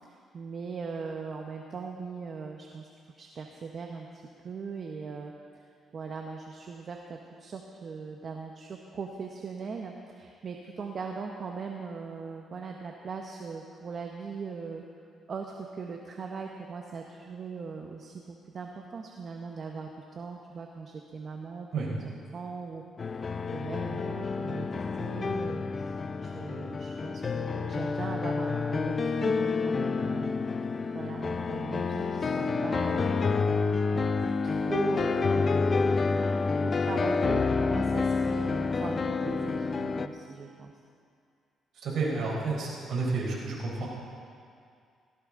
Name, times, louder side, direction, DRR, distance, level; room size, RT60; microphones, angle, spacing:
voice 1, 0.0-2.9 3.2-14.8 15.3-22.0 22.3-22.8 23.1-23.2 23.5-30.4 30.9-33.3 33.9-35.8 36.1-36.3 36.8-40.7, right 5 dB, 50° right, 2 dB, 1.1 m, -40 dB
sound 1, 23.0-40.1, left 4 dB, 40° left, 0.6 m, -28 dB
voice 2, 41.8-43.9, right 3 dB, 65° right, -3 dB, 4.4 m, -30 dB
18.0 x 15.0 x 3.8 m, 2.3 s
cardioid pair, 90°, 0 cm